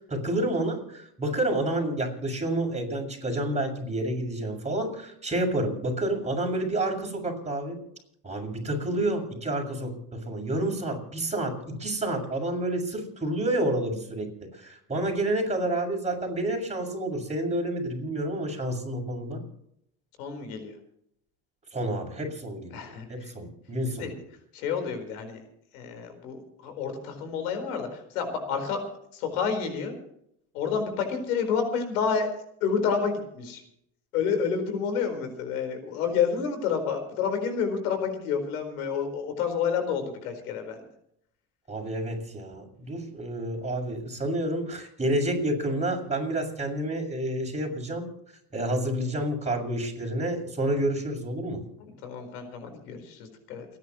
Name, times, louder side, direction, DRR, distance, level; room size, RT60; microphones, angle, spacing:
voice 1, 0.1-7.8 8.2-19.4 21.7-24.1 41.7-48.1 48.5-51.6, right 1 dB, 15° right, 0 dB, 6.8 m, -29 dB
voice 2, 20.2-20.7 22.7-23.3 24.0-24.2 24.5-25.4 25.7-29.9 30.5-32.3 32.6-33.6 34.1-40.9 51.8-53.7, left 6 dB, 85° left, 7 dB, 4.5 m, -29 dB
29.5 x 10.5 x 3.1 m, 0.74 s
hypercardioid pair, 85°, 43 cm